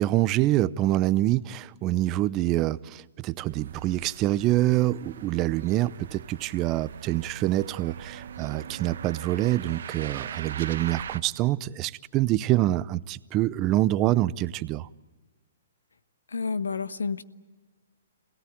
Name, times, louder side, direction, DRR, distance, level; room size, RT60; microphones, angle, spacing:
voice 1, 0.0-14.9, right 15 dB, 30° right, 0.7 m, -26 dB
sound 1, 3.4-11.2, right 8 dB, 65° right, 1.0 m, -41 dB
voice 2, 16.3-17.2, left 5 dB, 85° left, 1.2 m, -29 dB
27.0 x 18.0 x 9.2 m
hypercardioid pair, 130°, 0 cm